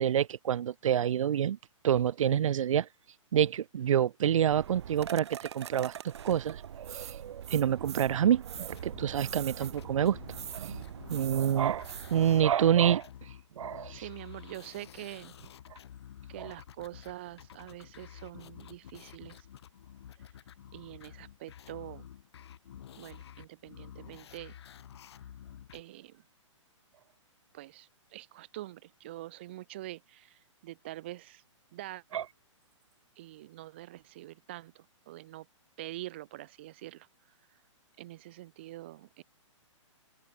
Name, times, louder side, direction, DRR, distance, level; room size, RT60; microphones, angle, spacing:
voice 1, 0.0-1.6 1.8-2.9 3.3-10.2 10.5-10.7 11.1-13.1 13.6-14.0 16.4-16.5 32.1-32.2, right 9 dB, 85° right, 0.5 m, -27 dB
sound 1, 4.5-12.5, right 9 dB, 55° right, 1.8 m, -43 dB
sound 2, 8.5-25.8, left 10 dB, 55° left, 0.9 m, -50 dB
voice 2, 13.9-15.3 16.3-19.5 20.7-22.1 22.9-24.6 25.7-26.2 27.5-31.4 31.7-32.2 33.2-35.5 35.8-37.6 38.0-39.2, right 16 dB, 20° right, 0.4 m, -45 dB
open air
hypercardioid pair, 170°, 16 cm